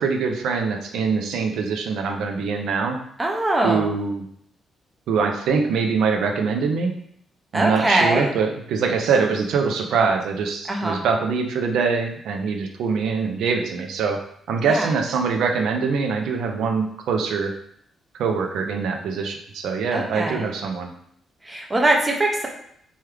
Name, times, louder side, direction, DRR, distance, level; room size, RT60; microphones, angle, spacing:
voice 1, 0.0-3.0 3.6-4.3 5.1-7.0 7.5-14.2 14.5-17.5 18.2-20.9, right 5 dB, 85° right, 4 dB, 0.4 m, -23 dB
voice 2, 3.2-3.8 7.5-8.3 10.7-11.0 14.6-14.9 19.9-20.5 21.4-22.5, right 1 dB, 15° right, 0 dB, 0.4 m, -22 dB
3.0 x 2.3 x 3.2 m, 0.69 s
cardioid pair, 155°, 0 cm